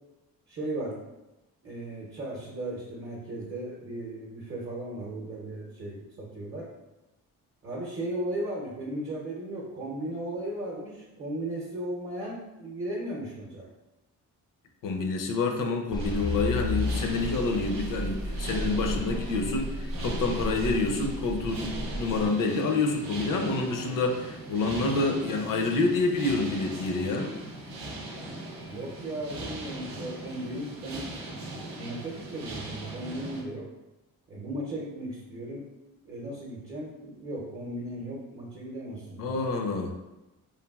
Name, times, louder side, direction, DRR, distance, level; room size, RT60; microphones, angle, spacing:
voice 1, 0.5-1.0 1.6-6.7 7.6-13.7 28.7-31.4 31.7-33.7 34.3-35.7 36.0-39.5, right 1 dB, 40° right, -4 dB, 0.7 m, -36 dB
voice 2, 14.8-27.3 39.2-39.9, left 3 dB, 65° left, 3 dB, 0.5 m, -28 dB
sound 1, 15.9-22.3, left 1 dB, 15° left, 0.4 m, -33 dB
sound 2, 16.0-33.4, right 1 dB, 90° right, 0.7 m, -40 dB
3.2 x 2.3 x 2.3 m, 1.0 s
cardioid pair, 95°, 34 cm